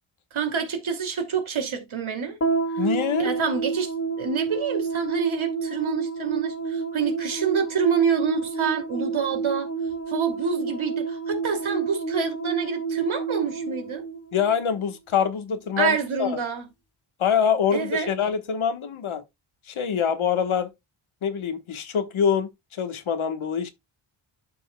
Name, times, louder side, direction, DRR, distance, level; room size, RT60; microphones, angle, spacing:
voice 1, 0.3-2.4 3.2-3.9 4.2-9.7 10.1-14.0 15.8-16.6 17.7-18.1, right 6 dB, 70° right, 2.6 m, -27 dB
sound 1, 2.4-14.9, right 4 dB, 30° left, 2.2 m, -30 dB
voice 2, 2.8-3.3 14.3-16.4 17.2-19.2 19.7-20.7 21.2-23.7, left 7 dB, 75° left, 1.3 m, -25 dB
12.5 x 5.4 x 2.2 m
wide cardioid pair, 105°, 49 cm